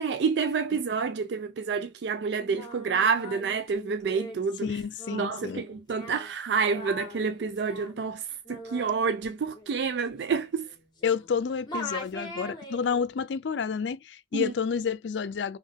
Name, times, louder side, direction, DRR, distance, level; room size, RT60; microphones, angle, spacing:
voice 1, 0.0-4.7 5.1-8.2 8.5-10.7 14.3-14.5, right 5 dB, 70° right, 0.4 m, -28 dB
Singing, 2.3-11.4 11.7-13.1, equal, 25° left, 1.6 m, -42 dB
voice 2, 4.6-5.6 11.0-15.6, left 6 dB, 85° left, 0.4 m, -30 dB
3.6 x 3.1 x 3.6 m
head